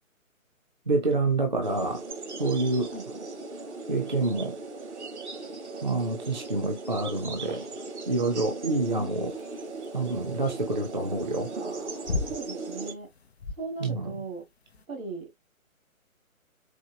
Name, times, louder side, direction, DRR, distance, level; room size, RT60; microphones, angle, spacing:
voice 1, 0.9-2.0 2.4-2.9 3.9-4.6 5.8-7.7 8.1-9.3 9.9-11.5 13.8-14.1, right 2 dB, 35° right, 0.4 m, -27 dB
sound 1, 1.6-12.9, right 3 dB, 55° right, 1.1 m, -38 dB
sound 2, 9.3-14.9, left 3 dB, 50° left, 0.5 m, -37 dB
voice 2, 12.3-13.1 13.6-14.4 14.9-15.3, right 3 dB, 75° right, 2.5 m, -38 dB
4.3 x 2.7 x 2.3 m
figure-of-eight pair, 140°, 42 cm